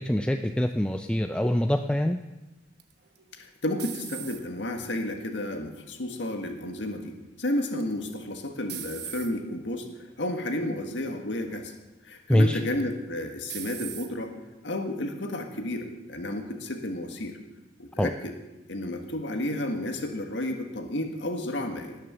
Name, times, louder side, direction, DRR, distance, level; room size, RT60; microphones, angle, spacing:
voice 1, 0.0-2.2 12.3-12.6 18.0-18.1, left 1 dB, 5° left, 6 dB, 0.4 m, -24 dB
sound 1, 2.8-4.7 5.3-5.8 7.8-8.2 8.7-9.3 10.1-10.3 10.8-10.9 12.8-13.2 13.5-14.1, right 11 dB, 60° right, 1.0 m, -39 dB
voice 2, 3.4-9.9 10.2-11.7 12.0-14.3 14.6-17.4 17.8-18.3 18.7-22.0, left 1 dB, 80° left, 4 dB, 1.7 m, -32 dB
19.0 x 6.7 x 6.9 m, 1.1 s
head